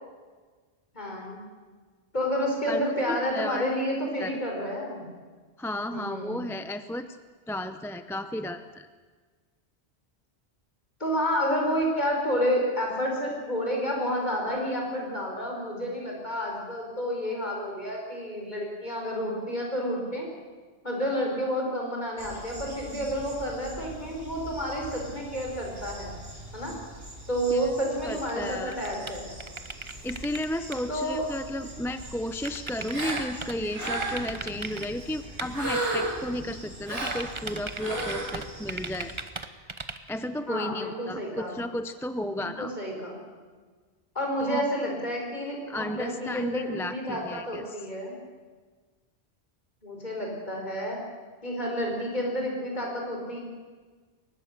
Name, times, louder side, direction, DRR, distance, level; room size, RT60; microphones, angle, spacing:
voice 1, 0.9-1.4 2.1-5.1 5.9-6.4 11.0-20.3 20.8-26.1 26.5-26.7 27.3-29.3 30.9-31.3 40.5-41.6 42.3-43.2 44.1-48.1 49.8-51.0 51.4-53.4, equal, 40° left, -1 dB, 5.1 m, -30 dB
voice 2, 2.7-3.6 4.2-4.4 5.6-7.1 7.5-8.9 27.5-27.6 28.0-28.8 30.0-39.1 40.1-42.8 44.4-44.6 45.7-47.8, left 1 dB, 5° left, 10 dB, 0.5 m, -33 dB
sound 1, 22.2-39.2, right 1 dB, 60° right, 3.6 m, -44 dB
sound 2, 28.2-30.4 30.7-30.8 32.4-33.5 33.9-34.9 35.4-35.5 37.0-40.1, right 3 dB, 30° right, 1.0 m, -37 dB
Gasp, 32.9-33.2 33.7-34.3 35.5-36.2 36.8-37.2 37.7-38.2, right 1 dB, 85° right, 5.1 m, -30 dB
22.5 x 20.0 x 6.7 m, 1.5 s
omnidirectional pair, 1.1 m